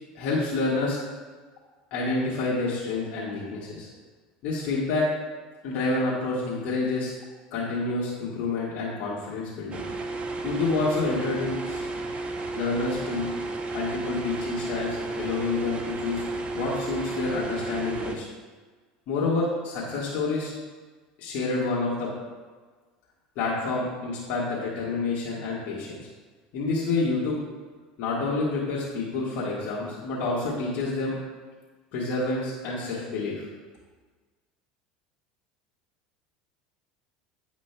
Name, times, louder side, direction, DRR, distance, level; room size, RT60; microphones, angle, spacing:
voice 1, 0.1-1.0 1.9-3.9 4.4-5.1 5.6-7.1 7.5-9.8 10.4-11.9 12.5-13.2 13.7-16.2 16.5-18.2 19.1-20.5 21.2-22.1 23.3-25.9 26.5-27.4 28.0-31.2 31.9-33.5, left 3 dB, 60° left, -7 dB, 1.5 m, -28 dB
sound 1, 9.7-18.2, right 2 dB, 30° right, 0.7 m, -32 dB
9.8 x 5.0 x 2.2 m, 1.4 s
hypercardioid pair, 95°, 4 cm